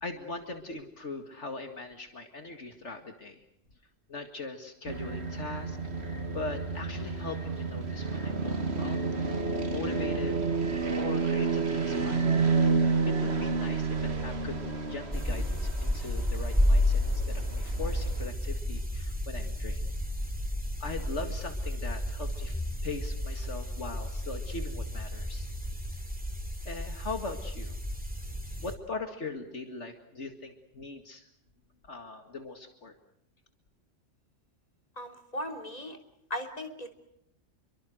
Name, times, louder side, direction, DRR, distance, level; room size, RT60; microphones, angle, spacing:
voice 1, 0.0-3.4 4.1-5.8 6.3-9.1 9.7-10.4 11.0-12.3 13.1-19.8 20.8-25.5 26.6-27.8 28.6-31.3 31.8-32.9, left 3 dB, 65° left, 6 dB, 2.3 m, -40 dB
sound 1, 4.8-18.3, right 4 dB, 55° right, 2.2 m, -30 dB
sound 2, 15.1-28.7, left 1 dB, 5° right, 2.7 m, -31 dB
voice 2, 35.0-36.0 36.3-37.0, equal, 30° left, 5 dB, 3.4 m, -37 dB
28.5 x 23.5 x 6.4 m, 0.74 s
omnidirectional pair, 1.3 m